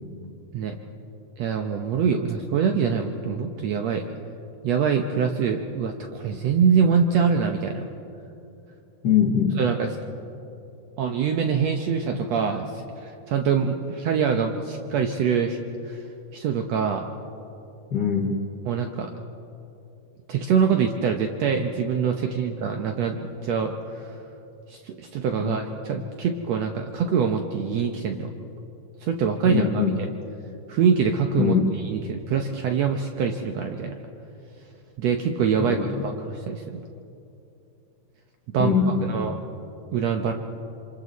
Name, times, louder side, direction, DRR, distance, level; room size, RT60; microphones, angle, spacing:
voice 1, 1.4-4.1 4.6-7.8 9.6-10.0 11.0-15.6 15.8-17.0 18.7-19.1 20.3-24.2 24.7-28.3 29.0-29.8 30.7-34.0 35.0-36.8 38.5-39.4 39.9-40.3, right 6 dB, 70° right, 4 dB, 1.9 m, -24 dB
voice 2, 9.0-9.6 17.9-18.4 25.4-25.6 29.5-29.9 31.4-31.7 35.6-35.8 38.6-39.4, left 6 dB, 60° left, 1 dB, 1.1 m, -22 dB
27.5 x 26.5 x 4.1 m, 2.8 s
omnidirectional pair, 3.5 m